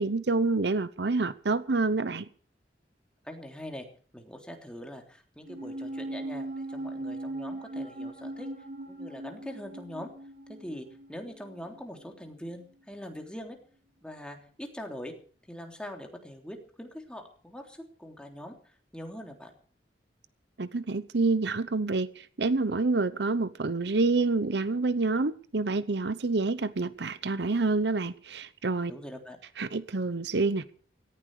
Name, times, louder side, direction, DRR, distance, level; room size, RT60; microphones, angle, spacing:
voice 1, 0.0-2.3 20.6-28.9 29.6-30.6, right 3 dB, 70° right, 0.9 m, -27 dB
voice 2, 3.2-3.9 4.1-8.5 8.9-10.1 10.6-13.6 14.0-15.1 15.5-18.5 18.9-19.5 28.9-29.4, equal, 5° left, 3.4 m, -42 dB
sound 1, 5.4-12.0 12.3-12.4, right 1 dB, 50° right, 6.0 m, -39 dB
18.0 x 15.0 x 4.9 m
head